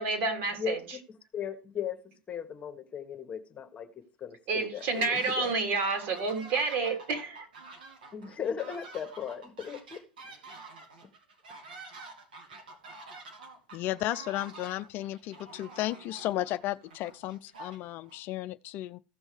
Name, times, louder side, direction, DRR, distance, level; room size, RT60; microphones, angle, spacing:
voice 1, 0.0-0.8 4.5-7.5, right 4 dB, 55° right, 3.5 m, -29 dB
voice 2, 0.5-5.5 8.1-10.1, left 8 dB, 25° left, 1.4 m, -37 dB
sound 1, 4.6-5.6 5.9-18.2, right 3 dB, 80° right, 2.3 m, -48 dB
voice 3, 13.7-19.0, left 15 dB, 50° left, 0.5 m, -34 dB
16.0 x 6.2 x 3.3 m
hypercardioid pair, 95°, 5 cm